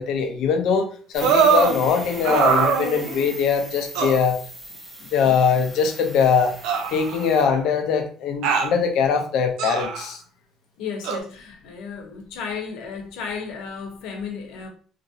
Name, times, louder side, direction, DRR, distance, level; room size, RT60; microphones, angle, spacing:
voice 1, 0.0-4.4 5.1-6.5 6.9-10.2, left 6 dB, 60° left, 0.5 m, -22 dB
sound 1, 1.1-7.4, right 1 dB, 10° right, 0.7 m, -39 dB
sound 2, 1.2-1.8 2.2-3.3 3.9-4.2 5.2-5.3 6.6-7.5 8.4-8.7 9.6-10.1 11.0-11.2, right 6 dB, 85° right, 0.5 m, -21 dB
voice 2, 10.8-14.7, left 6 dB, 90° left, 0.8 m, -33 dB
2.9 x 2.6 x 2.7 m
cardioid pair, 175°, 0 cm